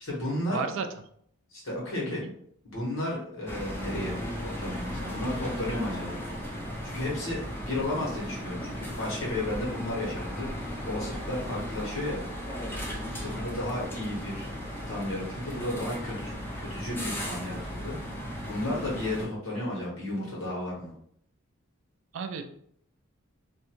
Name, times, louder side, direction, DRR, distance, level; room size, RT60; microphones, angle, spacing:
voice 1, 0.0-0.6 1.5-2.2 2.6-6.2 6.8-10.5 10.9-12.2 13.2-14.5 14.9-17.9 18.4-20.9, left 1 dB, 65° left, -4 dB, 1.1 m, -33 dB
voice 2, 0.5-0.9 2.2-2.3 11.5-11.6 13.1-13.4 22.1-22.4, right 5 dB, 65° right, 7 dB, 0.3 m, -34 dB
sound 1, 3.5-19.3, equal, 10° left, 0.4 m, -36 dB
2.5 x 2.2 x 2.9 m, 0.66 s
head